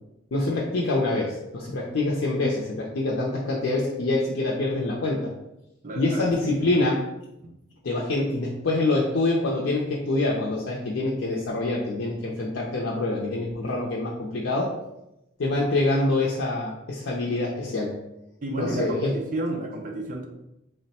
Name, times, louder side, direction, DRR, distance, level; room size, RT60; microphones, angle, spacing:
voice 1, 0.3-5.3 6.0-7.0 7.8-14.7 15.4-17.9 18.6-19.1, left 2 dB, 85° left, -4 dB, 0.5 m, -25 dB
voice 2, 5.8-6.8 7.4-7.5 18.4-20.3, right 1 dB, 40° right, 1 dB, 0.4 m, -31 dB
3.4 x 2.1 x 4.1 m, 0.89 s
head